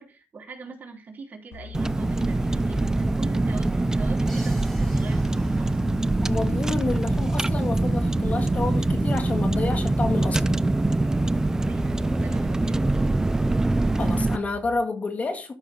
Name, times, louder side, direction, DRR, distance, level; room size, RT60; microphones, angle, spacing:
voice 1, 0.0-5.8 11.5-13.1, right 4 dB, 45° right, 3.4 m, -42 dB
sound 1, 1.5-14.7, left 7 dB, 90° left, 4.0 m, -41 dB
Car, 1.7-14.4, right 2 dB, 15° right, 0.4 m, -24 dB
Crash cymbal, 4.3-6.1, right 1 dB, 5° left, 4.9 m, -47 dB
voice 2, 6.2-10.6 14.0-15.5, left 3 dB, 35° left, 1.9 m, -29 dB
13.0 x 6.1 x 3.6 m
cardioid pair, 95°, 4 cm